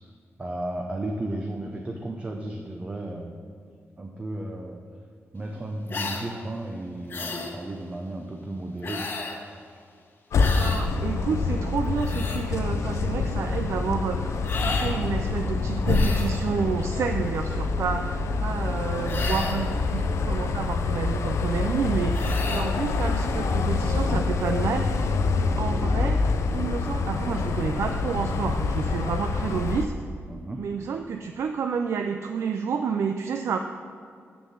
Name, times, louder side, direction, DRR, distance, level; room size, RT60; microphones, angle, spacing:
voice 1, 0.4-3.5 4.0-4.8 5.3-9.1 10.5-10.7 22.5-22.6 30.3-30.7, right 1 dB, 25° right, 1 dB, 0.7 m, -34 dB
sound 1, 5.9-6.3 7.1-7.5 8.8-9.4 10.4-10.8 11.8-12.4 14.4-15.0 15.8-16.4 19.0-19.7 22.1-22.7, left 4 dB, 45° left, 1.1 m, -33 dB
sound 2, 10.3-29.8, left 4 dB, 80° left, 0.6 m, -26 dB
voice 2, 10.4-25.0 25.4-26.2 26.5-29.9 30.6-33.6, right 6 dB, 65° right, 6 dB, 0.4 m, -30 dB
7.4 x 6.9 x 7.1 m, 2.2 s
wide cardioid pair, 145°, 5 cm